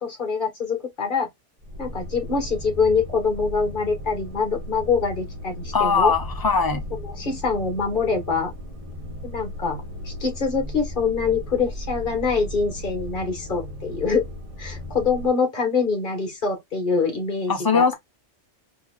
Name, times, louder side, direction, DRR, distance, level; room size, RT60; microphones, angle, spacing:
voice 1, 0.0-1.3 1.8-6.1 7.0-8.5 9.2-14.2 14.6-17.9, left 5 dB, 45° left, 1.6 m, -24 dB
sound 1, 1.6-15.3, left 1 dB, 30° right, 1.2 m, -36 dB
voice 2, 5.7-6.8 17.5-17.9, left 5 dB, 20° left, 0.8 m, -20 dB
4.5 x 2.9 x 2.3 m
omnidirectional pair, 1.2 m